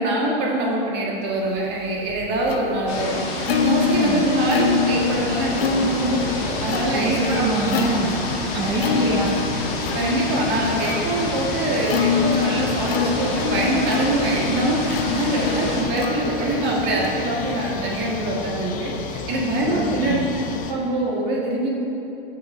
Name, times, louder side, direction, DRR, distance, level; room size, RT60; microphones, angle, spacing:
voice 1, 0.0-7.4 8.7-8.9 9.9-20.2 20.4-21.7, right 1 dB, 35° right, -3 dB, 1.6 m, -24 dB
Plucked string instrument, 1.6-18.3, left 5 dB, 80° left, 0.8 m, -27 dB
sound 1, 2.9-15.8, left 2 dB, 45° left, 1.7 m, -29 dB
voice 2, 3.8-4.2 6.9-8.1 8.5-9.3 19.7-20.3, right 3 dB, 15° right, -4 dB, 0.6 m, -25 dB
sound 2, 4.9-20.7, left 5 dB, 30° left, 0.6 m, -33 dB
14.0 x 5.6 x 2.6 m, 2.9 s
hypercardioid pair, 130°, 30 cm